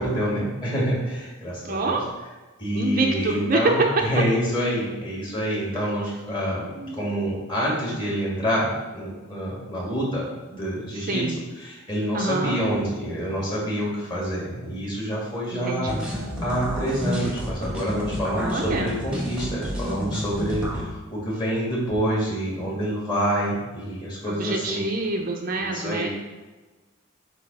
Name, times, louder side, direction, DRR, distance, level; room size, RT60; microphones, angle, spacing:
voice 1, 0.0-2.0 2.6-11.2 11.6-24.8 25.6-26.1, equal, 25° left, -6 dB, 2.3 m, -27 dB
voice 2, 1.6-2.0 2.7-3.9 6.8-7.0 11.0-11.5 12.1-12.6 15.5-16.1 18.3-19.0 24.2-26.1, right 3 dB, 45° right, 2 dB, 0.6 m, -26 dB
sound 1, 15.8-20.8, equal, 5° right, 1.2 m, -30 dB
7.9 x 3.0 x 5.5 m, 1.2 s
head